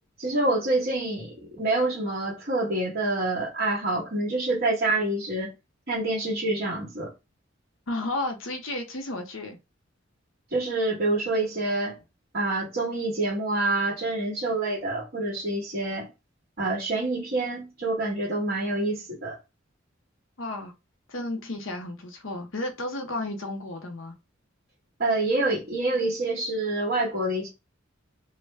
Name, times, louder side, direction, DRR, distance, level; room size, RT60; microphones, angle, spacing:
voice 1, 0.2-5.5 5.9-7.1 10.5-12.0 12.3-16.1 16.6-19.4 25.0-27.5, right 2 dB, 50° right, 1.5 m, -27 dB
voice 2, 7.9-9.6 20.4-20.7 21.1-24.2, left 2 dB, 70° left, 0.8 m, -33 dB
3.1 x 2.1 x 3.3 m
head